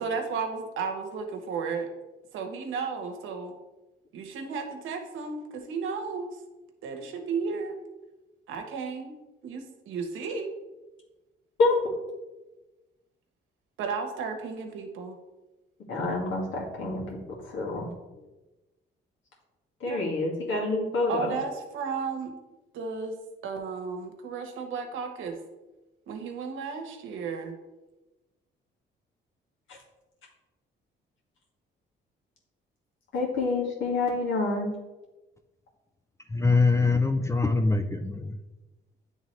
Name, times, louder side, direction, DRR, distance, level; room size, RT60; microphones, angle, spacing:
voice 1, 0.0-1.9 2.3-3.5 4.1-6.3 6.8-7.8 8.5-9.1 9.4-10.5 13.8-15.2 19.8-20.0 21.1-22.3 22.7-23.1 23.4-25.4 26.1-27.5, right 5 dB, 85° right, 4 dB, 1.0 m, -33 dB
voice 2, 15.9-17.2 17.5-17.9 19.8-21.3 33.1-34.7, left 3 dB, 80° left, -3 dB, 1.9 m, -27 dB
voice 3, 36.3-38.4, left 3 dB, 15° left, 6 dB, 0.4 m, -23 dB
9.0 x 3.6 x 3.2 m, 1.1 s
cardioid pair, 90°, 20 cm